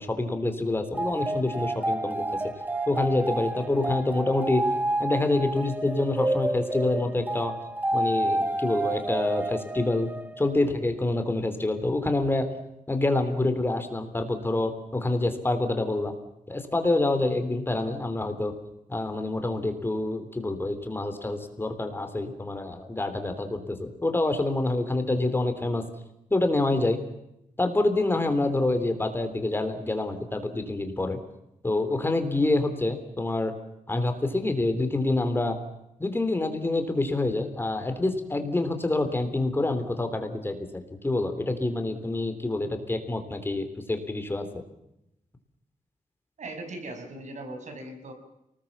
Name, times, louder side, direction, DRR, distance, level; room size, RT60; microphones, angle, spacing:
voice 1, 0.0-2.2 2.9-4.6 5.0-7.5 7.9-10.1 10.4-12.5 12.9-16.1 16.5-18.5 18.9-25.8 26.3-27.0 27.6-31.2 31.6-33.5 33.9-35.6 36.0-44.5, left 2 dB, 15° left, 7 dB, 3.3 m, -27 dB
sound 1, 0.9-10.7, right 1 dB, 15° right, 1.1 m, -29 dB
voice 2, 46.4-48.1, right 2 dB, 65° right, 5 dB, 6.1 m, -39 dB
29.5 x 20.0 x 7.3 m, 0.84 s
wide cardioid pair, 175°, 13 cm